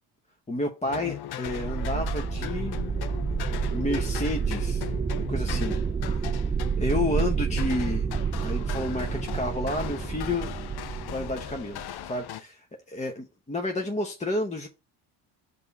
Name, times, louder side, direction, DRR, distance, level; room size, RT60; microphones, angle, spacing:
voice 1, 0.5-2.8 3.7-4.9 5.3-5.8 6.1-6.5 6.8-8.1 8.4-10.5 11.1-14.7, left 2 dB, 15° left, 0.9 m, -31 dB
sound 1, 0.8-12.4, left 12 dB, 55° left, 0.6 m, -39 dB
sound 2, 1.5-12.1, right 6 dB, 15° right, 0.3 m, -29 dB
5.3 x 4.2 x 5.1 m
supercardioid pair, 80°, 48 cm